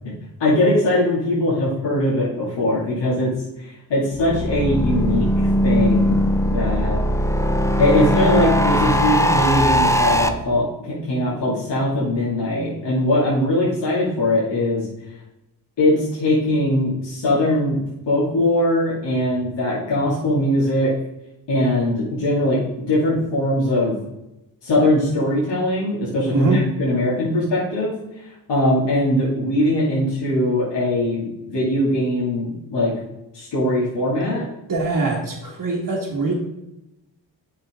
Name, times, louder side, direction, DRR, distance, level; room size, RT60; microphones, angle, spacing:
voice 1, 0.4-6.2 6.5-7.0 7.8-14.9 15.8-17.8 18.1-20.9 21.5-23.9 24.6-27.9 28.2-32.9 33.3-34.5, left 1 dB, 70° left, -7 dB, 2.6 m, -21 dB
sound 1, 4.2-10.3, equal, 5° left, 0.7 m, -19 dB
voice 2, 26.3-26.6 34.7-36.3, right 3 dB, 45° right, -6 dB, 1.9 m, -23 dB
8.4 x 5.6 x 3.7 m, 0.91 s
supercardioid pair, 50°, 44 cm